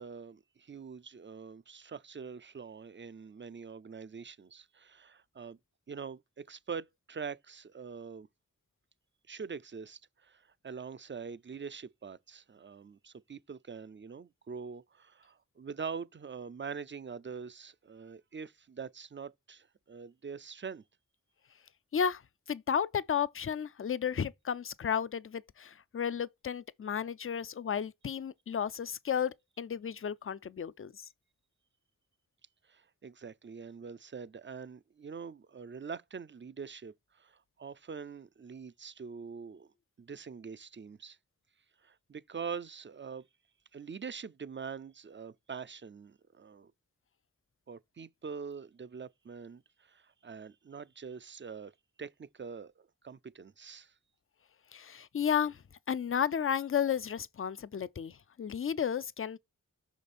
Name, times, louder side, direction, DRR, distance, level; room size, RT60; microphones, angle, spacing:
voice 1, 0.0-5.6 5.9-6.2 6.5-8.3 9.3-20.8 32.6-39.7 40.0-41.2 41.8-43.3 43.7-46.7 47.7-51.7 52.0-53.9, right 6 dB, 40° right, 0.4 m, -44 dB
voice 2, 22.5-31.0 54.7-55.6 55.9-59.4, left 8 dB, 45° left, 0.4 m, -33 dB
6.0 x 5.1 x 4.2 m
wide cardioid pair, 55°, 31 cm